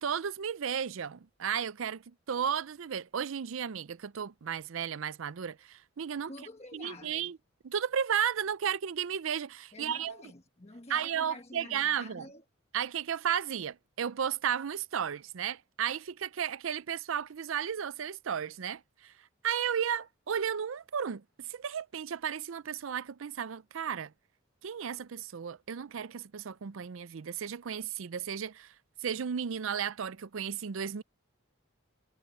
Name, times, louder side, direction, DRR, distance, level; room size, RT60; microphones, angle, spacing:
voice 1, 0.0-6.3 6.7-7.4 7.6-10.2 10.9-12.3 12.7-19.1 19.4-24.1 24.6-28.7 29.0-31.0, right 8 dB, 75° right, 0.5 m, -34 dB
voice 2, 6.3-7.3 9.7-12.4, left 2 dB, 30° left, 1.3 m, -48 dB
head